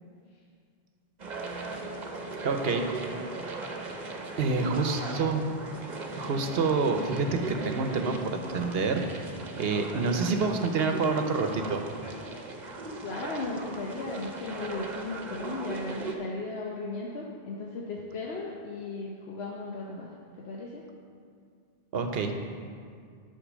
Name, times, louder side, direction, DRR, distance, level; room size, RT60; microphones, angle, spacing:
sound 1, 1.2-16.2, right 3 dB, 45° right, 1.0 m, -38 dB
voice 1, 2.4-2.9 4.4-5.5 6.2-9.3 9.6-11.8 21.9-22.3, right 4 dB, 75° right, 5 dB, 1.0 m, -27 dB
voice 2, 9.8-10.3 13.0-20.1 20.4-20.9, left 3 dB, 85° left, -2 dB, 1.1 m, -36 dB
10.0 x 5.9 x 6.2 m, 2.2 s
omnidirectional pair, 1.0 m